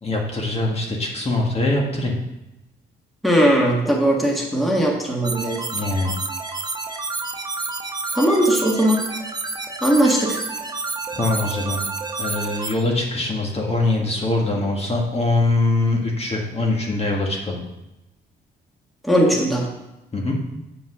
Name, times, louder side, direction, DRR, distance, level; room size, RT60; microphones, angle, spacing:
voice 1, 0.0-2.1 5.7-6.2 11.2-11.8 12.2-17.6 20.1-20.4, left 2 dB, 30° left, 0 dB, 1.6 m, -22 dB
voice 2, 3.2-5.6 8.2-9.0 9.8-10.4 19.0-19.7, right 1 dB, ahead, -1 dB, 1.5 m, -18 dB
sound 1, 5.2-12.7, right 3 dB, 20° right, 0.8 m, -29 dB
8.1 x 5.2 x 4.9 m, 0.92 s
cardioid pair, 90°, 20 cm